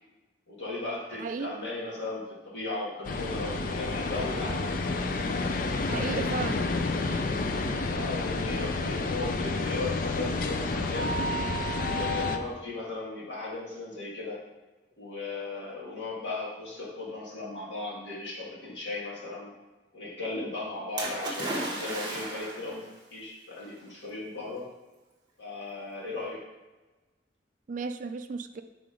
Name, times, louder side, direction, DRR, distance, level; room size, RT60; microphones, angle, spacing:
voice 1, 0.5-4.7 7.8-11.2 11.8-14.4 15.0-19.5 19.9-24.7 25.4-26.4, left 2 dB, 75° left, -5 dB, 1.9 m, -37 dB
voice 2, 1.1-1.5 5.9-6.7 27.7-28.6, right 4 dB, 45° right, 9 dB, 0.3 m, -34 dB
sound 1, 3.0-12.4, left 3 dB, 50° left, 0.4 m, -29 dB
Splash splatter, 21.0-22.8 23.7-23.8, right 1 dB, 25° right, 1.2 m, -34 dB
5.8 x 3.8 x 5.0 m, 1.2 s
head